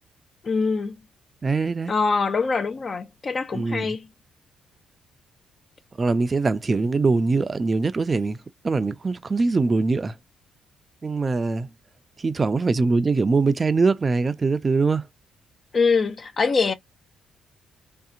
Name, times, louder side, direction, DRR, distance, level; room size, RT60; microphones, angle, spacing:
voice 1, 0.4-1.0 1.9-4.1 15.7-16.7, left 4 dB, 40° left, 0.6 m, -23 dB
voice 2, 1.4-1.9 3.5-3.9 6.0-8.4 8.6-10.1 11.0-11.7 12.2-15.1, right 3 dB, 30° right, 0.5 m, -22 dB
3.4 x 2.7 x 2.5 m
cardioid pair, 90°, 0 cm